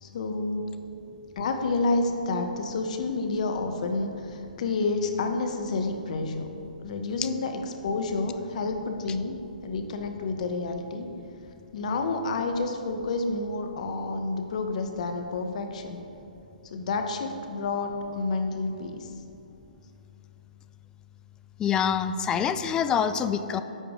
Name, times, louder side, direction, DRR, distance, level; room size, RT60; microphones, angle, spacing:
voice 1, 0.0-0.8 1.3-6.5 6.8-11.1 11.7-16.0 16.6-19.1, left 3 dB, 55° left, 5 dB, 1.0 m, -29 dB
voice 2, 21.6-23.6, left 8 dB, 15° left, 10 dB, 0.3 m, -25 dB
11.0 x 6.8 x 3.6 m, 3.0 s
figure-of-eight pair, 135°, 5 cm